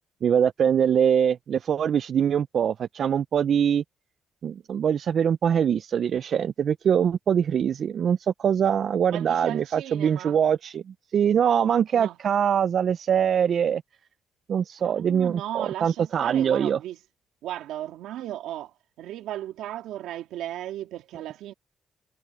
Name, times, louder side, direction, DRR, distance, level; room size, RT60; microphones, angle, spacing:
voice 1, 0.2-3.8 4.4-10.8 11.1-13.8 14.5-16.8, right 8 dB, 60° right, 0.4 m, -23 dB
voice 2, 9.1-10.4 11.9-12.2 14.8-17.0 17.4-21.5, right 13 dB, 85° right, 3.1 m, -36 dB
cardioid pair, 90°, 0 cm